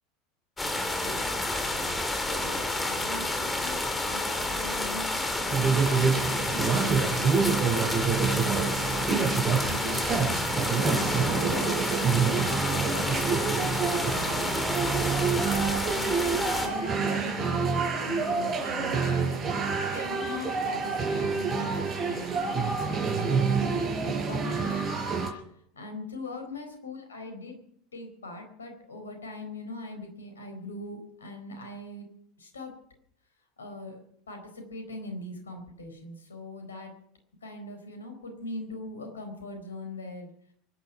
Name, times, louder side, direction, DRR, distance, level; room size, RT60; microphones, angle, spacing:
sound 1, 0.6-16.7, left 2 dB, 10° left, 3.0 m, -30 dB
voice 1, 2.3-2.6 2.9-5.5 5.9-7.5 8.2-8.7 9.0-10.0 10.9-14.5 15.1-19.5 19.9-25.0 25.7-27.6 27.9-32.1 32.4-32.7 33.6-34.0 34.3-36.9 37.4-40.3, left 2 dB, 75° left, 5 dB, 4.4 m, -41 dB
sound 2, 5.5-25.3, right 5 dB, 30° right, 4.8 m, -27 dB
23.0 x 10.5 x 5.8 m, 0.68 s
figure-of-eight pair, 75°, 0 cm